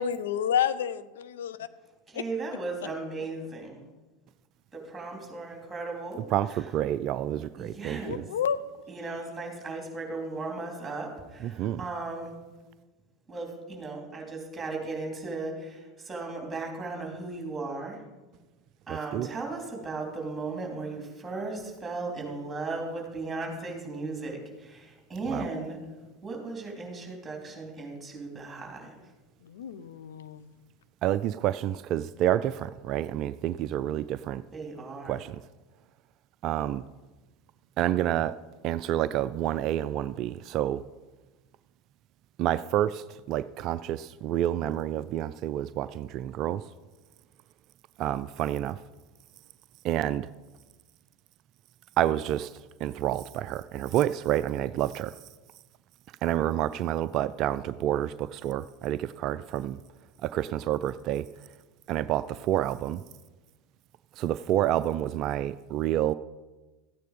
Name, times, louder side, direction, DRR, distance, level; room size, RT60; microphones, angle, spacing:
voice 1, 0.0-1.7 8.0-8.6 29.4-30.4, left 8 dB, 75° left, 12 dB, 0.6 m, -30 dB
voice 2, 2.1-3.8 4.7-6.6 7.6-8.3 8.9-12.4 13.3-18.0 18.9-25.8 26.2-29.0 34.5-35.2, right 3 dB, 15° right, 0 dB, 3.6 m, -36 dB
voice 3, 6.3-8.2 11.4-11.8 18.9-19.3 25.3-25.4 31.0-34.4 35.0-35.4 36.4-36.8 37.8-38.3 38.6-40.8 42.4-46.6 48.0-48.8 49.8-50.3 52.0-52.5 52.8-55.1 56.2-59.8 60.2-61.3 61.9-63.0 64.2-66.1, right 12 dB, 50° right, 14 dB, 0.3 m, -28 dB
13.5 x 9.0 x 5.2 m, 1.2 s
figure-of-eight pair, 80°, 0 cm